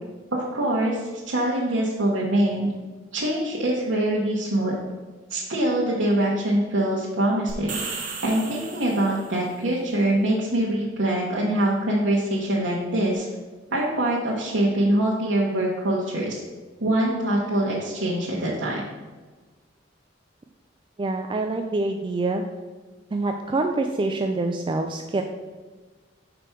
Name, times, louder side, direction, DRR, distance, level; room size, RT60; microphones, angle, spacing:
voice 1, 0.3-2.7 3.1-4.7 5.3-7.8 8.2-13.3 13.7-16.4 16.8-18.8, right 1 dB, 80° right, -5 dB, 1.1 m, -24 dB
sound 1, 7.5-9.4, right 5 dB, 45° right, 1.1 m, -35 dB
voice 2, 21.0-22.4 23.1-25.2, right 2 dB, 25° right, 4 dB, 0.3 m, -26 dB
5.1 x 4.5 x 5.9 m, 1.3 s
head